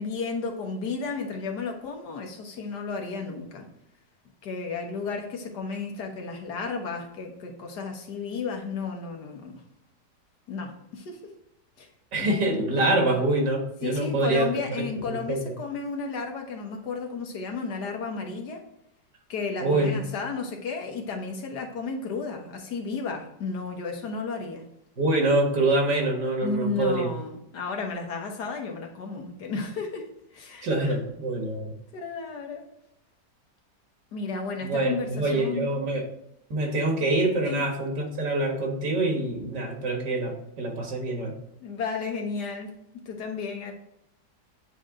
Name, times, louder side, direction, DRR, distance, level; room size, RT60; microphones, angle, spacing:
voice 1, 0.0-3.7 4.4-9.6 10.5-11.3 11.8-11.9 12.2-12.3 13.8-18.7 19.3-24.7 26.4-31.0 31.9-32.7 34.1-35.7 37.5-37.7 41.6-43.7, left 4 dB, 70° left, 2 dB, 1.7 m, -33 dB
voice 2, 12.1-15.5 19.6-20.0 25.0-27.1 30.6-31.7 34.6-36.0 36.5-41.3, right 2 dB, 85° right, 1 dB, 2.2 m, -25 dB
9.0 x 3.3 x 3.6 m, 0.80 s
omnidirectional pair, 1.8 m